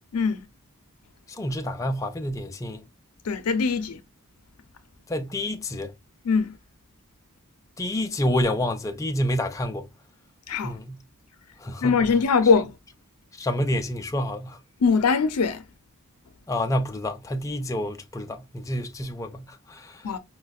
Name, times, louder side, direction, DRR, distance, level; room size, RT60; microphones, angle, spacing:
voice 1, 0.1-0.5 3.2-4.0 6.2-6.6 10.5-10.8 11.8-12.7 14.8-15.6 20.0-20.2, left 5 dB, 90° left, 0.6 m, -22 dB
voice 2, 1.3-2.8 5.1-5.9 7.8-9.9 10.6-11.0 11.6-12.0 13.4-14.6 16.5-20.1, left 1 dB, 15° left, 0.3 m, -28 dB
4.9 x 2.2 x 2.2 m
head